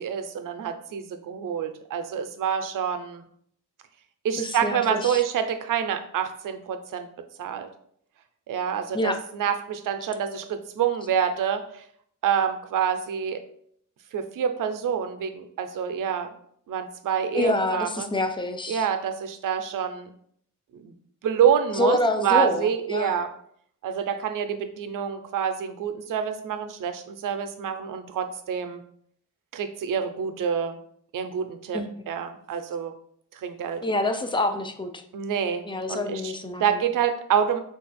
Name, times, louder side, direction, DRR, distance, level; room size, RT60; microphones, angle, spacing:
voice 1, 0.0-3.3 4.2-7.1 7.4-7.7 8.5-11.8 12.2-13.5 14.1-16.3 16.7-18.1 18.7-20.1 20.7-20.9 21.2-23.3 23.8-28.8 29.5-30.8 31.1-32.9 33.3-33.8 35.1-37.6, right 8 dB, 85° right, 8 dB, 0.5 m, -27 dB
voice 2, 4.4-5.2 8.9-9.2 17.3-18.9 21.8-23.2 31.7-31.9 33.8-35.0 35.7-36.8, left 1 dB, 15° left, 7 dB, 0.3 m, -27 dB
3.7 x 2.4 x 4.0 m, 0.65 s
wide cardioid pair, 120°, 31 cm